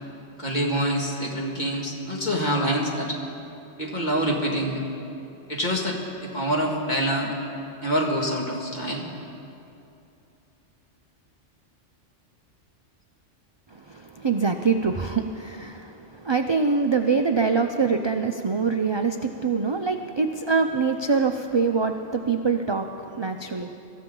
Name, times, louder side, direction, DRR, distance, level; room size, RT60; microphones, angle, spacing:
voice 1, 0.4-3.2 3.8-4.8 5.5-7.3 7.8-9.1, equal, 40° left, -1 dB, 2.1 m, -26 dB
voice 2, 13.7-23.7, right 5 dB, 50° right, 5 dB, 0.3 m, -24 dB
24.5 x 14.0 x 3.8 m, 2.8 s
omnidirectional pair, 1.3 m